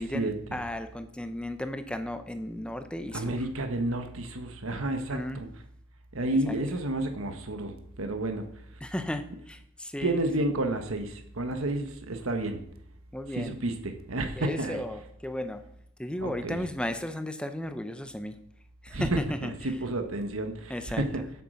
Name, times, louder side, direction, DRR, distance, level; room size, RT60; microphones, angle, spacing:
voice 1, 0.0-3.4 4.9-5.4 6.4-6.6 8.8-10.3 13.1-13.5 14.4-15.6 16.0-18.4 18.8-19.1 19.4-19.5 20.7-21.0, left 1 dB, 5° left, 9 dB, 0.7 m, -35 dB
voice 2, 3.1-5.5 6.1-8.5 10.0-12.6 13.3-14.8 16.2-16.6 18.9-21.2, right 1 dB, 70° right, 6 dB, 1.3 m, -31 dB
8.5 x 8.3 x 6.4 m, 0.69 s
head